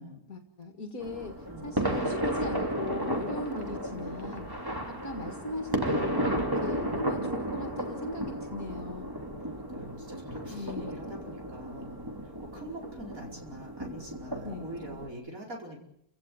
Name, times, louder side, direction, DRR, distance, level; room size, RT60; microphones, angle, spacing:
voice 1, 0.3-4.5 4.9-9.1 10.5-11.0 14.4-14.7, left 2 dB, 60° left, 5 dB, 2.5 m, -39 dB
sound 1, 1.0-15.1, right 1 dB, 15° right, 2.9 m, -33 dB
voice 2, 9.1-12.0 12.4-15.8, right 1 dB, 55° right, 1 dB, 5.5 m, -44 dB
29.0 x 17.0 x 9.4 m, 0.73 s
omnidirectional pair, 1.7 m